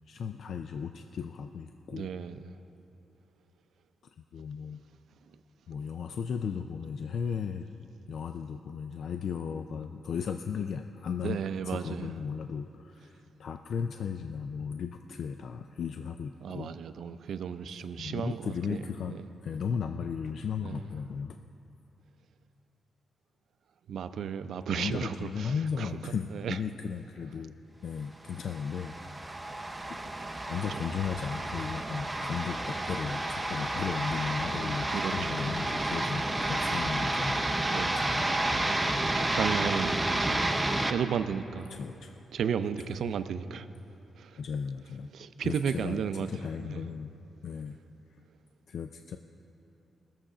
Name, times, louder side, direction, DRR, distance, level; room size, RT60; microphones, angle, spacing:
voice 1, 0.1-2.1 4.3-4.8 5.7-7.7 8.1-11.4 11.7-16.8 18.0-21.4 24.7-27.5 27.8-29.0 29.9-30.0 30.5-37.4 41.7-42.2 44.4-45.1 45.4-47.2 47.4-47.8 48.1-48.2 48.7-49.2, left 6 dB, 65° left, 7 dB, 0.4 m, -36 dB
voice 2, 1.9-2.5 5.2-5.4 11.2-12.1 16.4-19.3 20.6-20.9 23.9-26.6 30.7-31.0 34.9-35.4 36.1-36.2 37.7-38.1 39.0-41.7 42.3-43.7 44.2-44.4 45.1-46.3 46.6-46.8, right 7 dB, 75° right, 11 dB, 0.4 m, -34 dB
sound 1, 28.4-40.9, right 1 dB, 10° right, 0.6 m, -30 dB
19.5 x 7.1 x 5.0 m, 2.9 s
cardioid pair, 115°, 0 cm